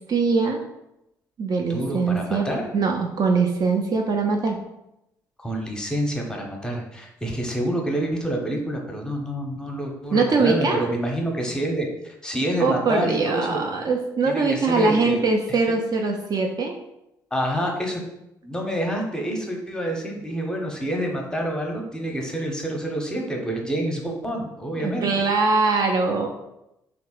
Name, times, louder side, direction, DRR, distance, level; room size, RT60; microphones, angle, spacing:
voice 1, 0.1-0.6 1.4-2.5 2.7-4.6 10.1-10.8 12.6-16.8 24.8-26.3, right 4 dB, 40° right, 2 dB, 0.4 m, -22 dB
voice 2, 1.6-2.7 5.4-13.6 14.2-15.6 17.3-18.1 18.4-25.1, right 1 dB, 10° left, 0 dB, 0.7 m, -27 dB
2.8 x 2.0 x 3.0 m, 0.86 s
figure-of-eight pair, 45°, 10 cm